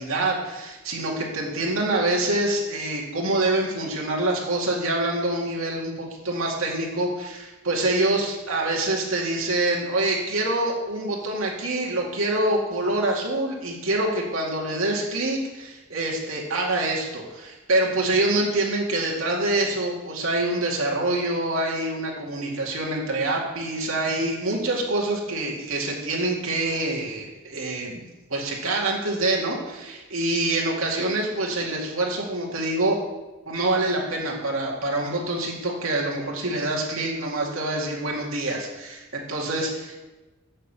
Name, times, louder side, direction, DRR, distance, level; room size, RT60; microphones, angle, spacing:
voice 1, 0.0-28.0 28.3-33.0 33.5-40.0, right 2 dB, 80° right, -2 dB, 2.2 m, -26 dB
7.3 x 6.5 x 7.3 m, 1.1 s
head